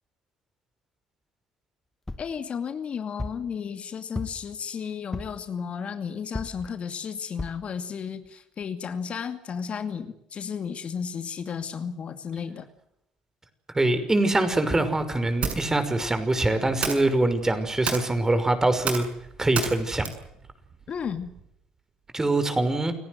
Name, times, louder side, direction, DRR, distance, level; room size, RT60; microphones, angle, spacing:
sound 1, 2.1-2.4 3.2-3.5 4.1-4.6 5.1-5.5 6.3-6.7 7.4-7.7 8.2-8.3 8.6-8.7, left 2 dB, 15° left, 2.4 m, -35 dB
voice 1, 2.2-12.7 20.9-21.3, left 7 dB, 45° left, 9 dB, 2.5 m, -33 dB
voice 2, 13.7-19.1 19.4-20.1 22.1-22.9, right 2 dB, 20° right, 10 dB, 5.8 m, -24 dB
sound 2, 14.8-21.5, right 6 dB, 50° right, 7.2 m, -35 dB
29.5 x 18.0 x 8.0 m, 0.77 s
hypercardioid pair, 55°, 3 cm